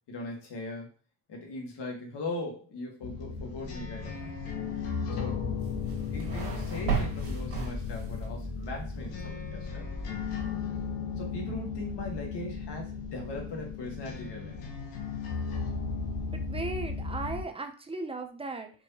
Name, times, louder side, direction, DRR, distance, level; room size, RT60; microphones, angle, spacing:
voice 1, 0.1-0.9 1.3-4.3 5.2-5.6 6.1-9.9 11.2-14.7, left 2 dB, 55° left, 0 dB, 1.7 m, -39 dB
sound 1, 3.0-17.4, left 5 dB, 85° left, 1.1 m, -35 dB
sound 2, 5.6-8.3, right 6 dB, 45° right, 1.8 m, -34 dB
voice 2, 16.3-18.7, right 2 dB, 15° right, 6 dB, 0.4 m, -37 dB
4.6 x 2.6 x 2.8 m, 0.38 s
supercardioid pair, 85°, 49 cm